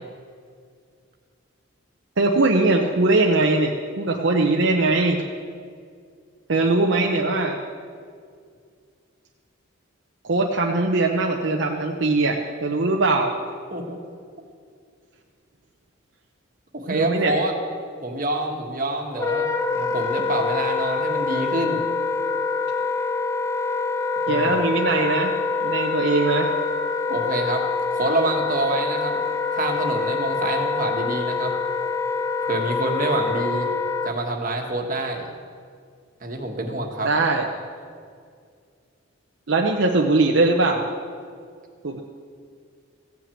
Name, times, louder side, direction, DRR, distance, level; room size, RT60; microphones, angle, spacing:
voice 1, 2.2-5.2 6.5-7.6 10.2-13.3 16.9-17.3 24.3-25.3 25.6-26.5 37.0-37.5 39.5-40.9 41.8-42.0, right 2 dB, 60° right, 1 dB, 0.8 m, -21 dB
voice 2, 13.7-14.0 16.7-17.5 18.0-19.5 19.7-21.9 24.3-24.6 27.1-27.6 27.9-29.2 29.5-31.5 32.4-33.7 34.0-35.3 36.2-37.1, right 2 dB, 40° right, 2 dB, 1.4 m, -26 dB
Wind instrument woodwind instrument, 19.1-34.1, left 4 dB, 15° left, 0.4 m, -25 dB
15.5 x 6.0 x 8.4 m, 2.2 s
head